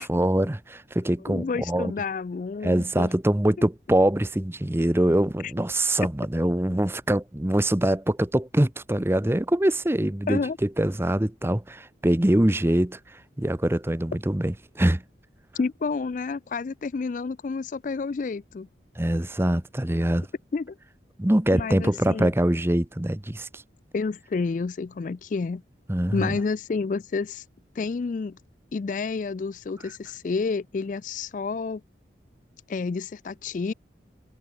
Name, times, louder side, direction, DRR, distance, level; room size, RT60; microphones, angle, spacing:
voice 1, 0.0-1.9 2.6-15.0 19.0-20.3 21.2-23.6 25.9-26.4, right 1 dB, 15° right, 0.7 m, -24 dB
voice 2, 1.3-3.1 3.6-3.7 5.4-5.5 10.3-10.6 15.6-18.7 20.5-20.8 21.5-22.3 23.9-25.6 26.1-27.4 27.8-28.4 28.7-31.8 32.7-33.7, left 4 dB, 45° left, 0.3 m, -29 dB
head